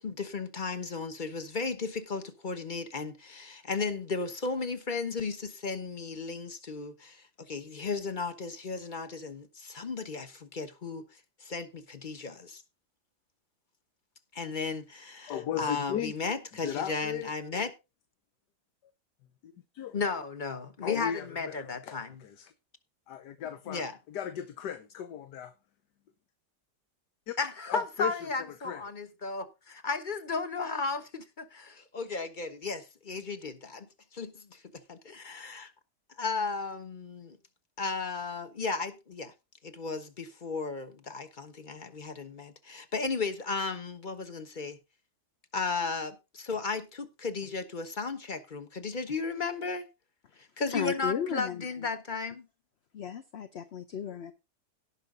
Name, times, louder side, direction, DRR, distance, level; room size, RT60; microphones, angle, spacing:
voice 1, 0.0-12.6 14.3-17.7 19.9-22.2 23.7-24.0 27.4-35.7 36.2-37.4 37.8-39.3 39.6-44.8 45.5-49.9 50.4-52.5, left 4 dB, 30° left, 1.2 m, -35 dB
voice 2, 15.3-16.1 16.6-17.3 19.4-20.0 20.8-22.5 23.1-25.5 27.3-27.4 27.7-28.2 28.6-28.8, left 9 dB, 80° left, 1.4 m, -36 dB
voice 3, 50.7-51.6 52.9-54.3, left 8 dB, 50° left, 0.9 m, -34 dB
17.5 x 5.9 x 3.8 m
omnidirectional pair, 1.8 m